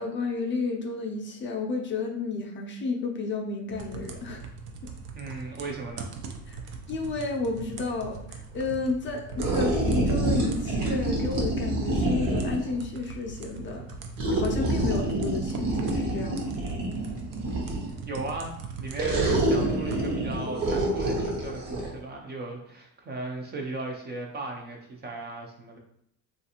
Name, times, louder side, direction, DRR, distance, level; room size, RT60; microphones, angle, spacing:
voice 1, 0.0-4.4 6.5-6.6 6.9-13.9 14.3-16.5, left 3 dB, 35° left, 1 dB, 0.5 m, -31 dB
sound 1, 3.7-20.4, right 5 dB, 85° right, 0.6 m, -41 dB
voice 2, 5.1-6.2 18.0-25.8, right 2 dB, 30° right, 1 dB, 0.4 m, -37 dB
sound 2, 9.4-12.7 14.2-18.0 18.9-21.9, right 2 dB, 65° right, 1.0 m, -27 dB
3.1 x 2.5 x 2.8 m, 0.71 s
cardioid pair, 140°, 36 cm